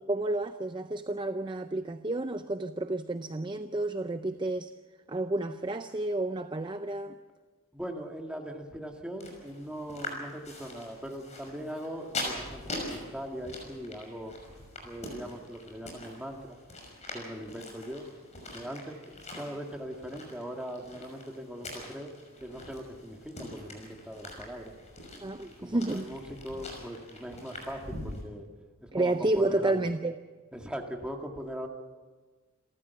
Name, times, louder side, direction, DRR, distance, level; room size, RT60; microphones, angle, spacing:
voice 1, 0.1-4.7 5.1-7.2 25.2-26.1 28.9-30.2, right 2 dB, 25° right, 9 dB, 0.5 m, -30 dB
voice 2, 7.7-14.4 14.8-16.6 17.1-18.1 18.5-22.1 22.4-24.7 25.6-28.5 28.8-29.9 30.5-31.7, equal, 5° right, 2 dB, 1.9 m, -40 dB
sound 1, 9.2-28.2, left 2 dB, 35° left, 5.9 m, -43 dB
28.5 x 13.5 x 7.0 m, 1.4 s
head